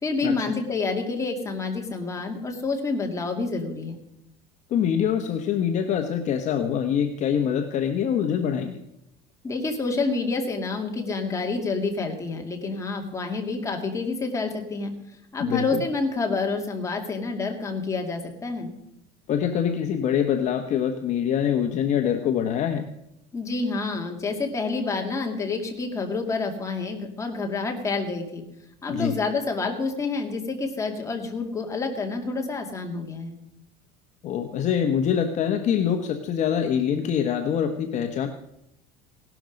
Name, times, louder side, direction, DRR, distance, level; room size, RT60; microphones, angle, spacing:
voice 1, 0.0-4.0 9.4-14.9 15.3-18.7 23.3-28.4 28.8-33.4, left 3 dB, 15° left, 2 dB, 2.3 m, -28 dB
voice 2, 4.7-8.8 15.4-15.8 19.3-22.8 28.9-29.2 34.2-38.3, left 8 dB, 40° left, 5 dB, 1.1 m, -24 dB
17.5 x 12.0 x 5.2 m, 0.83 s
cardioid pair, 155°, 19 cm